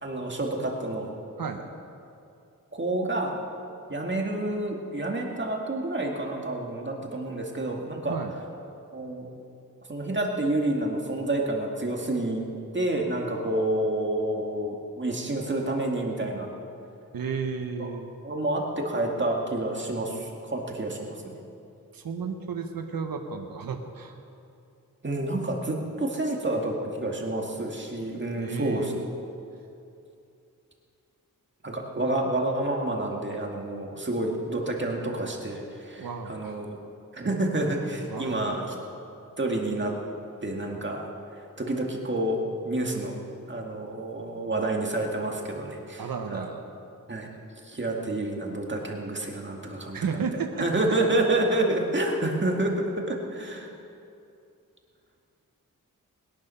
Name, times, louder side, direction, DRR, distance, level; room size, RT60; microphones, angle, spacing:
voice 1, 0.0-1.2 2.7-3.4 3.9-8.2 8.9-9.3 9.9-12.4 12.7-16.5 17.8-17.9 18.2-21.3 25.0-28.9 31.6-36.8 37.1-38.7 39.4-39.9 40.4-43.2 43.5-46.5 47.1-47.3 47.6-50.0 50.6-53.7, right 1 dB, 35° right, 0 dB, 2.1 m, -29 dB
voice 2, 17.1-18.1 21.9-24.1 28.4-29.2 36.0-36.6 38.1-38.5 46.0-46.6 49.9-50.7, right 5 dB, 90° right, 4 dB, 1.2 m, -33 dB
21.0 x 10.5 x 5.7 m, 2.6 s
wide cardioid pair, 105°, 34 cm